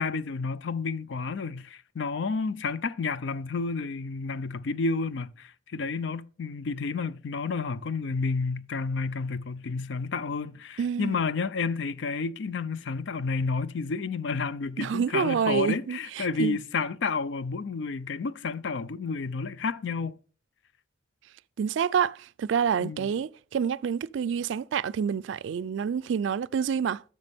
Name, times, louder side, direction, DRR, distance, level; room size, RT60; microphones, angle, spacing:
voice 1, 0.0-20.2 22.8-23.1, left 4 dB, 65° left, 0.4 m, -30 dB
voice 2, 10.8-11.2 14.8-16.6 21.6-27.0, right 7 dB, 70° right, 0.3 m, -28 dB
10.5 x 6.4 x 3.5 m
head